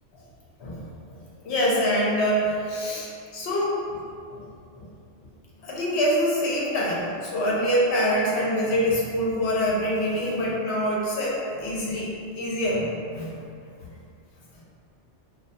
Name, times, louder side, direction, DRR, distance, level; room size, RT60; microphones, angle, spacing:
voice 1, 0.6-4.0 4.3-4.4 4.7-4.9 5.6-13.3, equal, 70° left, -5 dB, 0.8 m, -25 dB
2.3 x 2.2 x 2.6 m, 2.4 s
omnidirectional pair, 1.2 m